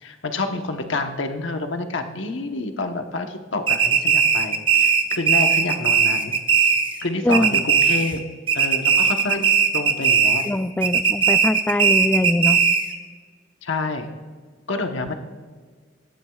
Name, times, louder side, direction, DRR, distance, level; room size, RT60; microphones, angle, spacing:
voice 1, 0.0-6.3 6.6-6.7 7.0-8.2 8.5-9.4 9.7-10.4 13.6-14.1 14.7-15.1, left 2 dB, 70° left, 5 dB, 1.1 m, -28 dB
sound 1, 3.7-7.0 7.3-8.2 8.5-10.5 10.8-13.0, right 6 dB, 25° right, 0.7 m, -18 dB
voice 2, 7.2-7.6 10.4-12.6, left 1 dB, 10° left, 12 dB, 0.3 m, -22 dB
16.5 x 12.5 x 2.4 m, 1.6 s
head